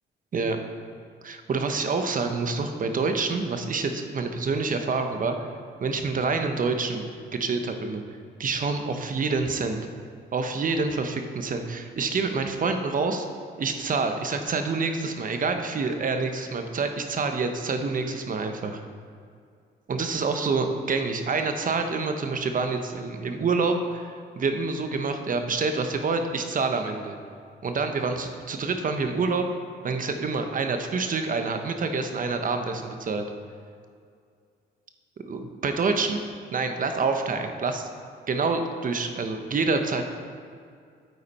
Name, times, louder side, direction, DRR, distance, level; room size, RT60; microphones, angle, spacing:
voice 1, 1.2-5.4 5.8-7.1 7.3-8.0 8.4-9.8 10.3-13.3 13.6-18.8 19.9-27.2 27.6-29.5 29.8-33.2 35.2-37.9 38.3-40.1, right 4 dB, 45° right, 6 dB, 0.9 m, -27 dB
8.9 x 8.2 x 4.2 m, 2.3 s
cardioid pair, 90°, 20 cm